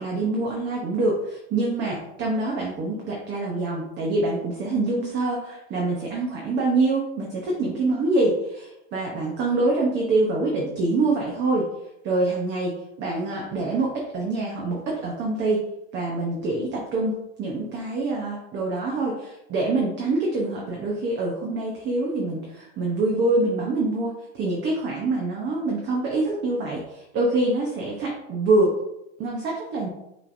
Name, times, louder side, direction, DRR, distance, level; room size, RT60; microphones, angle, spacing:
voice 1, 0.0-11.7 12.0-12.7 13.0-15.6 15.9-28.8 29.2-29.9, right 2 dB, 35° right, -2 dB, 0.9 m, -25 dB
5.4 x 3.3 x 2.6 m, 0.87 s
supercardioid pair, 145°, 33 cm